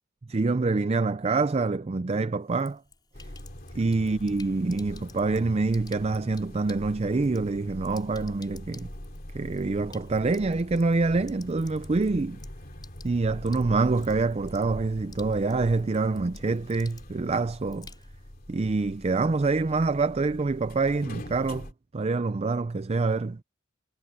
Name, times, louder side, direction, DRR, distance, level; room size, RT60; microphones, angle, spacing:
voice 1, 0.3-2.8 3.7-8.9 9.3-12.4 13.0-17.9 18.5-23.4, right 3 dB, 30° right, 0.4 m, -26 dB
Sink (filling or washing), 2.4-18.3, left 5 dB, 20° left, 5.8 m, -55 dB
sound 1, 3.1-21.7, equal, 45° left, 3.1 m, -43 dB
head